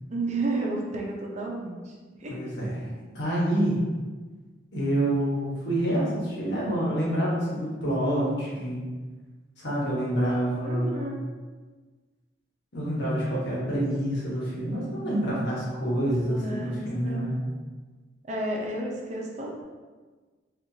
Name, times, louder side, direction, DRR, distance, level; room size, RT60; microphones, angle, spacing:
voice 1, 0.1-1.9 2.2-2.3 8.0-8.4 10.6-11.3 16.2-17.2 18.3-19.6, right 2 dB, 40° right, -2 dB, 0.6 m, -32 dB
voice 2, 2.3-2.9 3.1-3.8 4.7-8.8 9.6-11.0 12.7-17.4, right 1 dB, 75° left, -6 dB, 1.2 m, -27 dB
4.3 x 2.5 x 2.7 m, 1.4 s
head